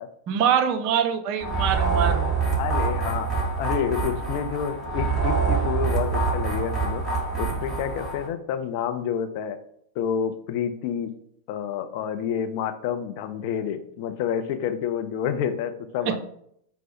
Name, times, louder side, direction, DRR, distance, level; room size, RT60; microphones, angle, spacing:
voice 1, 0.3-2.3 16.1-16.2, right 8 dB, 40° right, 8 dB, 0.5 m, -24 dB
sound 1, 1.4-8.3, right 4 dB, 15° right, 1.4 m, -25 dB
voice 2, 2.6-3.3 3.6-7.0 7.4-9.6 10.0-11.1 11.5-16.2, left 8 dB, 45° left, 9 dB, 0.4 m, -29 dB
4.6 x 2.0 x 4.3 m, 0.70 s
figure-of-eight pair, 90°, 0 cm